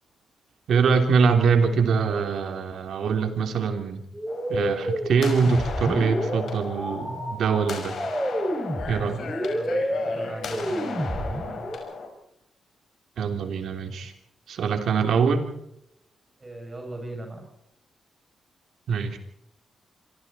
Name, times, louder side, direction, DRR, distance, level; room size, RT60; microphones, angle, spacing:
voice 1, 0.7-4.0 4.5-7.9 8.9-9.2 13.2-14.1 14.5-15.5 18.9-19.2, right 5 dB, 75° right, 6 dB, 3.3 m, -23 dB
sound 1, 4.1-11.8, equal, 5° right, 6.1 m, -30 dB
sound 2, 4.3-12.1, left 5 dB, 70° left, 5.7 m, -36 dB
voice 2, 9.2-11.6 16.4-17.5, right 2 dB, 30° right, 2 dB, 7.2 m, -38 dB
26.5 x 24.5 x 4.3 m, 0.77 s
cardioid pair, 75°, 0 cm